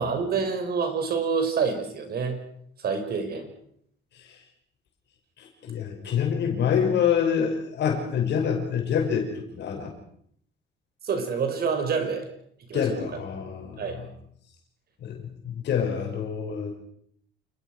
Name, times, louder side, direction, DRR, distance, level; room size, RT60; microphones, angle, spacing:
voice 1, 0.0-2.4 2.8-3.5 6.0-6.1 11.0-12.2 12.7-13.1 13.8-14.0, right 5 dB, 55° right, 7 dB, 5.9 m, -27 dB
voice 2, 4.1-4.4 5.4-9.9 12.7-14.1 15.0-16.8, left 7 dB, 65° left, 2 dB, 5.8 m, -27 dB
28.5 x 20.0 x 6.4 m, 0.67 s
cardioid pair, 135°, 20 cm